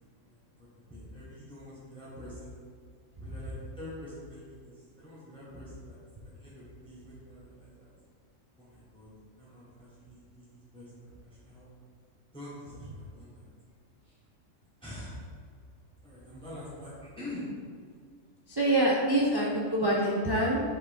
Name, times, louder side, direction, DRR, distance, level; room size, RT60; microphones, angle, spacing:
voice 1, 0.0-2.6 3.2-6.0 6.2-7.9 8.6-9.1 9.4-11.7 12.3-13.5 14.0-14.2 14.8-15.3 16.0-17.5, left 1 dB, 5° left, -8 dB, 1.2 m, -46 dB
voice 2, 18.5-20.6, right 1 dB, 30° right, -5 dB, 0.5 m, -25 dB
7.6 x 3.8 x 3.4 m, 2.1 s
omnidirectional pair, 1.4 m